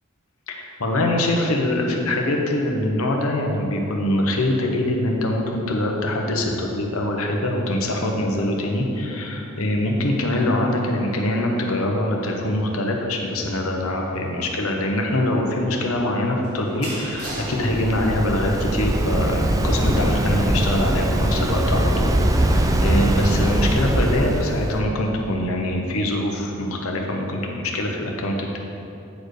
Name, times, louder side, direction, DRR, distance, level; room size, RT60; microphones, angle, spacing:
voice 1, 0.5-28.6, left 1 dB, 70° left, 1 dB, 1.0 m, -23 dB
sound 1, 14.1-23.5, right 1 dB, 80° right, 1.6 m, -41 dB
Waves surf, 17.1-24.8, right 1 dB, 15° right, 0.4 m, -21 dB
9.4 x 4.5 x 4.9 m, 2.8 s
head